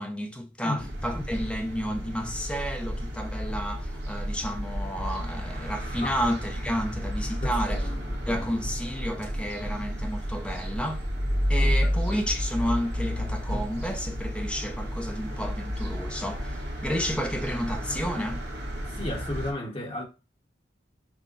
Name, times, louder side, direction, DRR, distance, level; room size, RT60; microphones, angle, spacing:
voice 1, 0.0-7.9 8.3-11.0 11.5-18.5, equal, 5° left, 0.7 m, -31 dB
sound 1, 0.8-19.5, equal, 60° right, 1.5 m, -31 dB
voice 2, 7.4-8.2 11.6-11.9 18.9-20.0, left 1 dB, 30° left, 1.2 m, -34 dB
6.1 x 2.2 x 3.9 m
head